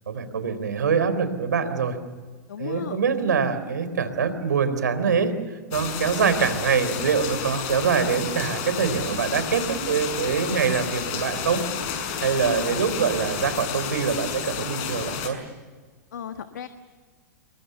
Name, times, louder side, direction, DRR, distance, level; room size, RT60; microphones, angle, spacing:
voice 1, 0.1-2.0 2.6-5.3 5.7-11.6 12.2-15.4, right 6 dB, 80° right, 11 dB, 3.8 m, -24 dB
voice 2, 2.5-3.0 12.4-12.6 16.1-16.7, left 8 dB, 75° left, 8 dB, 1.5 m, -34 dB
sound 1, 5.7-15.3, left 7 dB, 50° left, 6.3 m, -31 dB
28.0 x 22.5 x 6.8 m, 1.5 s
hypercardioid pair, 110°, 10 cm